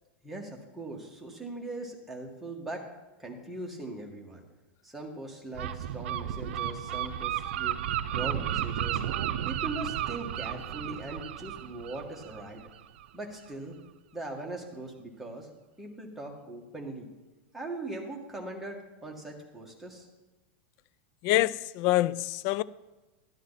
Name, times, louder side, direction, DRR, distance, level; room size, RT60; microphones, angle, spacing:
voice 1, 0.2-2.9 3.2-4.4 4.8-7.8 8.1-9.0 9.5-12.6 13.1-13.8 14.1-15.5 15.8-17.1 17.5-20.1, right 2 dB, 5° right, 1.9 m, -40 dB
Gull seagull, 5.5-13.1, right 11 dB, 75° right, 0.6 m, -33 dB
voice 2, 21.2-22.6, left 17 dB, 45° left, 0.4 m, -26 dB
12.5 x 12.0 x 4.1 m
supercardioid pair, 155°, 6 cm